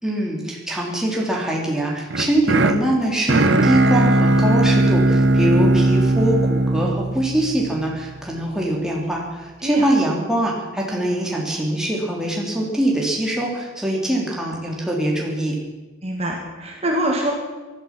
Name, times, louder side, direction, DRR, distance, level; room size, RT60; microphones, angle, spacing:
voice 1, 0.0-15.6, right 1 dB, 5° right, -3 dB, 2.9 m, -23 dB
sound 1, 2.1-8.2, right 2 dB, 60° right, 1.0 m, -18 dB
voice 2, 16.0-17.3, right 1 dB, 30° right, 0 dB, 2.3 m, -24 dB
18.0 x 12.5 x 5.9 m, 1.2 s
head